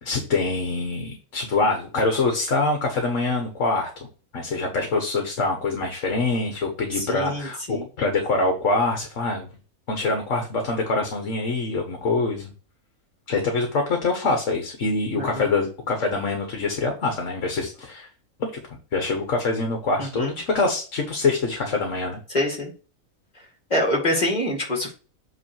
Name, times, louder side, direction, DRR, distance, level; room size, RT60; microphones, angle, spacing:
voice 1, 0.0-4.1 4.3-9.5 9.9-12.5 13.3-18.1 18.4-22.2, left 3 dB, 60° left, 3 dB, 1.6 m, -25 dB
voice 2, 6.9-7.9 15.2-15.4 20.0-20.3 22.3-22.7 23.7-24.9, left 1 dB, 30° left, -1 dB, 2.4 m, -25 dB
8.2 x 3.2 x 4.6 m, 0.36 s
omnidirectional pair, 1.5 m